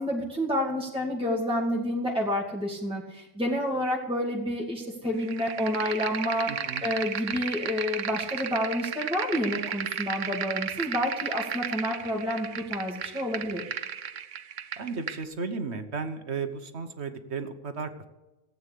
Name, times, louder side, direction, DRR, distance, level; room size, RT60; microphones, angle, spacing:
voice 1, 0.0-6.5 6.8-13.6, equal, 5° right, -3 dB, 2.3 m, -29 dB
sound 1, 5.2-15.2, right 8 dB, 90° right, 1.2 m, -34 dB
voice 2, 6.5-6.8 14.8-18.1, right 4 dB, 65° right, 8 dB, 1.4 m, -34 dB
16.5 x 8.8 x 8.3 m, 1.0 s
omnidirectional pair, 1.2 m